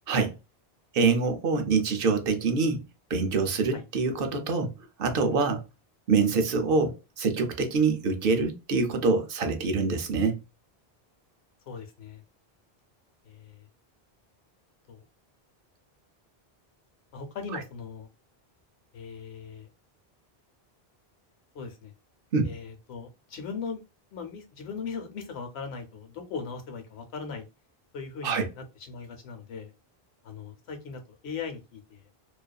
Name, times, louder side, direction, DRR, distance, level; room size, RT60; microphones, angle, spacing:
voice 1, 0.9-2.8 3.1-4.7 5.0-5.6 6.1-10.4 17.5-17.6 22.3-22.5 28.2-28.5, right 4 dB, 65° right, 0.7 m, -25 dB
voice 2, 11.7-12.2 13.2-13.7 14.9-15.0 17.1-18.1 18.9-19.7 21.5-21.9 22.4-23.8 24.1-27.5 27.9-29.7 30.2-32.0, left 5 dB, 85° left, 0.9 m, -39 dB
2.4 x 2.4 x 2.2 m
omnidirectional pair, 1.0 m